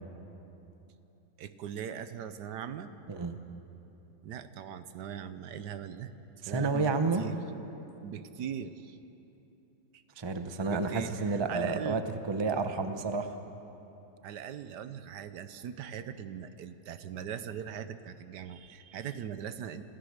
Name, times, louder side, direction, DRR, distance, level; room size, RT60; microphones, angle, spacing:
voice 1, 1.4-2.9 4.2-6.1 6.5-7.4 8.0-9.0 9.9-10.0 10.7-12.0 14.2-19.8, right 8 dB, 70° right, 11 dB, 1.3 m, -40 dB
voice 2, 3.1-3.4 6.4-7.2 10.2-13.4, right 4 dB, 25° right, 8 dB, 0.5 m, -30 dB
26.5 x 15.5 x 6.6 m, 3.0 s
omnidirectional pair, 1.9 m